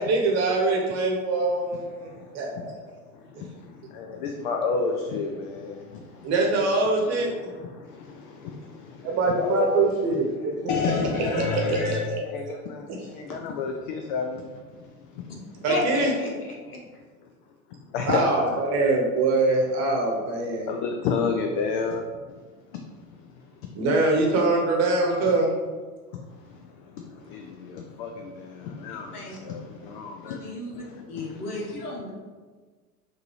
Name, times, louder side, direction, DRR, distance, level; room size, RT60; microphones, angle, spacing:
voice 1, 0.0-2.1 2.3-2.7 6.2-7.3 9.0-10.3 11.3-12.2 12.9-13.0 15.6-16.1 18.0-20.7 23.7-25.5, right 2 dB, 35° right, 0 dB, 1.1 m, -23 dB
voice 2, 1.7-2.7 3.1-6.3 7.3-9.8 10.3-15.3 17.7-18.6 20.7-22.4 22.7-23.5 26.1-31.4, left 4 dB, 35° left, 3 dB, 0.4 m, -31 dB
voice 3, 15.7-16.8 28.9-29.4 30.2-32.1, left 1 dB, 75° left, -1 dB, 1.2 m, -33 dB
5.8 x 2.7 x 3.1 m, 1.4 s
figure-of-eight pair, 85°, 46 cm